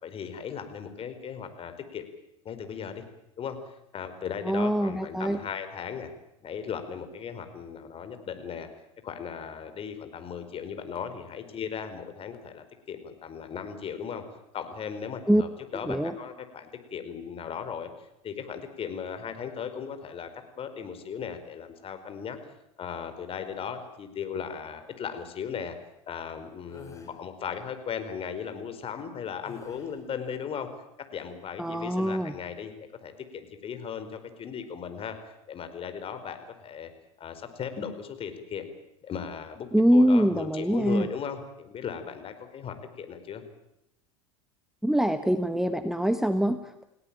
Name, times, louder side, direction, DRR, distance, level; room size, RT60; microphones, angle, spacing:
voice 1, 0.0-2.0 2.4-3.0 3.4-6.1 6.4-8.7 9.0-14.2 14.5-20.3 20.6-22.4 22.8-25.8 26.1-30.7 31.1-32.7 33.0-35.2 35.5-36.9 37.2-38.7 39.0-43.4, left 7 dB, 35° left, 9 dB, 4.7 m, -37 dB
voice 2, 4.4-5.4 15.3-15.4 15.9-16.1 31.6-32.3 39.7-41.1 44.8-46.8, equal, ahead, 10 dB, 1.4 m, -24 dB
sound 1, 26.7-27.2 29.4-30.1, left 4 dB, 20° left, 6.1 m, -50 dB
30.0 x 17.5 x 8.9 m, 0.84 s
hypercardioid pair, 90°, 17 cm